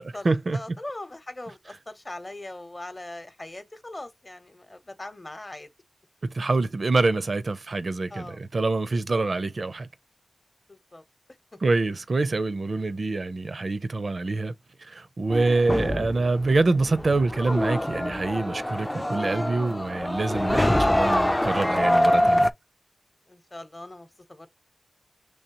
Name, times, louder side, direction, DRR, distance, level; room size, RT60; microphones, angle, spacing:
voice 1, 0.0-0.8 6.2-9.9 11.6-14.5 14.9-22.5, right 3 dB, 60° right, 0.5 m, -26 dB
voice 2, 0.5-5.7 8.1-8.4 8.9-9.2 10.7-11.0 12.8-13.0 23.3-24.5, left 1 dB, 30° left, 0.8 m, -40 dB
sound 1, 15.3-22.5, left 1 dB, 15° left, 0.3 m, -25 dB
5.4 x 3.1 x 2.9 m
wide cardioid pair, 80°, 0 cm